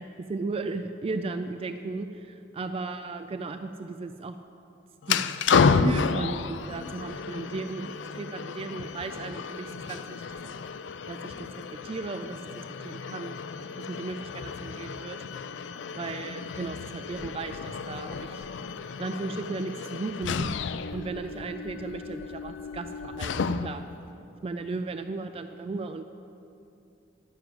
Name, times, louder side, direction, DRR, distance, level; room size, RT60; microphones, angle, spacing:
voice 1, 0.0-4.4 5.1-10.3 11.1-11.5 11.8-13.4 13.8-15.2 16.0-18.5 19.0-20.5 20.9-23.8 24.4-26.0, right 3 dB, 30° right, 8 dB, 0.3 m, -35 dB
sound 1, 5.0-23.9, left 5 dB, 70° left, 0.4 m, -31 dB
11.0 x 7.0 x 7.7 m, 2.7 s
head